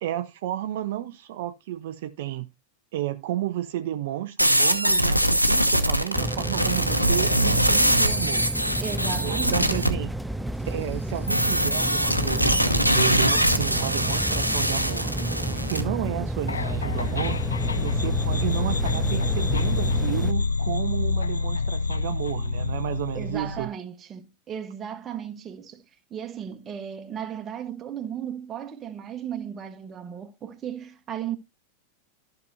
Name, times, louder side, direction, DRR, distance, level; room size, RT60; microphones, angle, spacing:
voice 1, 0.0-2.5 2.9-8.5 9.2-10.1 10.6-15.1 15.6-17.4 17.8-23.7, right 13 dB, 55° right, 0.5 m, -32 dB
sound 1, 4.4-9.9 11.3-15.8, equal, 90° right, 0.9 m, -23 dB
sound 2, 6.1-20.3, right 1 dB, 5° right, 0.4 m, -31 dB
voice 2, 8.8-10.0 23.1-25.8 26.1-31.4, right 9 dB, 25° right, 1.2 m, -35 dB
sound 3, 16.5-23.7, left 4 dB, 75° left, 0.5 m, -27 dB
14.0 x 5.8 x 2.7 m
figure-of-eight pair, 90°, 0 cm